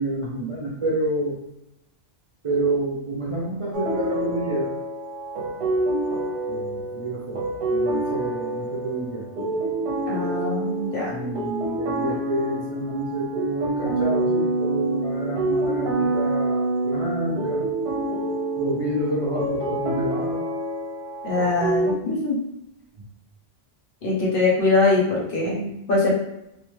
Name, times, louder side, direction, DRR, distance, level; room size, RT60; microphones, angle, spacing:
voice 1, 0.0-1.4 2.4-4.7 6.5-7.4 7.7-9.3 11.1-17.7 18.6-20.5, right 2 dB, 45° right, -6 dB, 0.4 m, -28 dB
sound 1, 3.7-21.9, right 1 dB, 65° right, 0.8 m, -27 dB
voice 2, 10.1-11.1 21.2-22.4 24.0-26.1, left 3 dB, 60° left, -3 dB, 1.0 m, -22 dB
2.6 x 2.2 x 3.1 m, 0.84 s
omnidirectional pair, 1.1 m